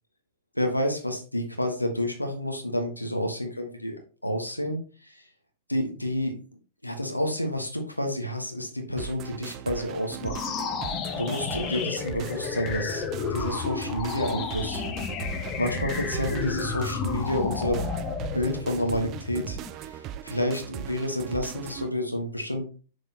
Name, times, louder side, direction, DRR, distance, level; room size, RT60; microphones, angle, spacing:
voice 1, 0.5-5.3 5.7-6.3 6.8-10.4 11.2-14.8 15.6-17.8 18.3-22.7, left 1 dB, 85° left, 3 dB, 1.3 m, -29 dB
sound 1, 9.0-21.9, right 11 dB, 30° right, 0.5 m, -39 dB
sound 2, 10.2-19.7, left 6 dB, 30° left, 0.9 m, -32 dB
6.7 x 6.3 x 2.9 m, 0.38 s
figure-of-eight pair, 105°, 0 cm